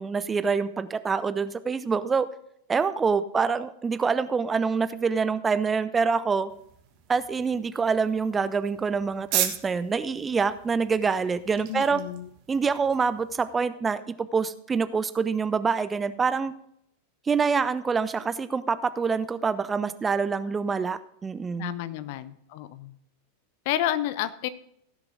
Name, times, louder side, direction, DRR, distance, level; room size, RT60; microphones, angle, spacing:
voice 1, 0.0-2.3 2.7-6.5 7.1-12.0 12.5-16.5 17.3-21.7, right 5 dB, 15° right, 14 dB, 0.5 m, -26 dB
sound 1, 6.5-13.5, right 11 dB, 45° right, 1.3 m, -36 dB
voice 2, 11.7-12.3 21.6-22.9 23.7-24.5, left 12 dB, 50° left, 15 dB, 0.7 m, -30 dB
16.0 x 6.9 x 3.8 m, 0.72 s
figure-of-eight pair, 90°, 0 cm